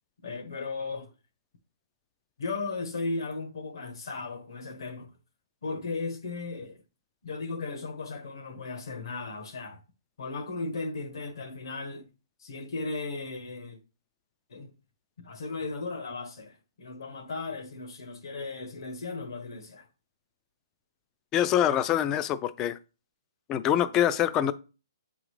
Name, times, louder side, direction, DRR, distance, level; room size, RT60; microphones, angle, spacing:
voice 1, 0.2-1.1 2.4-5.1 5.6-6.8 7.2-9.8 10.2-12.1 12.4-13.8 14.5-14.7 15.2-19.9, left 3 dB, 70° left, 1.3 m, -36 dB
voice 2, 21.3-22.8 23.5-24.5, left 11 dB, 20° left, 0.3 m, -25 dB
7.7 x 3.8 x 3.2 m
hypercardioid pair, 155°, 2 cm